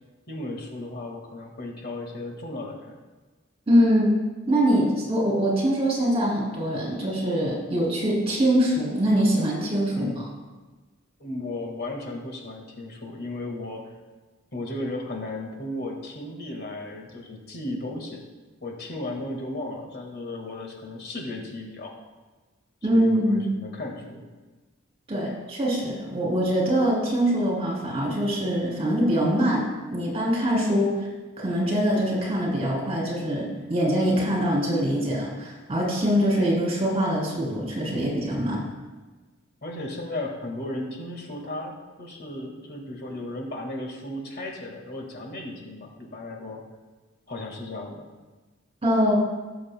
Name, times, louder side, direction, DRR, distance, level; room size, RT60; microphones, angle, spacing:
voice 1, 0.3-3.0 9.9-10.3 11.2-13.9 14.5-18.2 18.6-21.9 22.9-24.2 39.6-41.7 42.0-46.6 47.3-48.1, left 1 dB, 55° left, 1 dB, 1.7 m, -35 dB
voice 2, 3.7-4.2 4.5-10.2 22.8-23.5 25.1-31.1 31.4-38.6 48.8-49.1, equal, 30° right, -2 dB, 2.8 m, -23 dB
18.5 x 6.9 x 2.2 m, 1.3 s
head